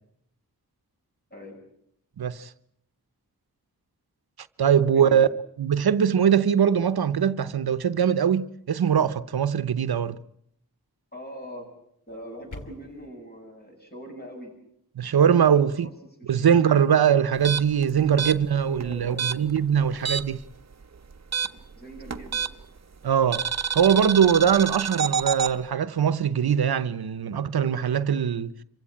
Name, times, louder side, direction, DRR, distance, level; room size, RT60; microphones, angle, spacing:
voice 1, 2.2-2.5 4.6-5.3 5.6-10.2 15.0-15.9 16.3-20.4 23.0-23.4 23.7-28.5, right 8 dB, 90° right, 0.9 m, -22 dB
voice 2, 4.8-5.2 11.1-11.7 12.1-14.5 15.2-15.5 15.8-15.9 16.2-16.7 18.0-18.3 18.6-19.4 21.8-22.5, equal, 25° left, 7.9 m, -42 dB
sound 1, 12.1-13.1, left 2 dB, 55° left, 2.3 m, -44 dB
sound 2, 17.3-20.5 20.7-22.8 23.3-25.5, right 6 dB, 45° right, 1.0 m, -28 dB
26.5 x 16.0 x 8.9 m
wide cardioid pair, 85°, 36 cm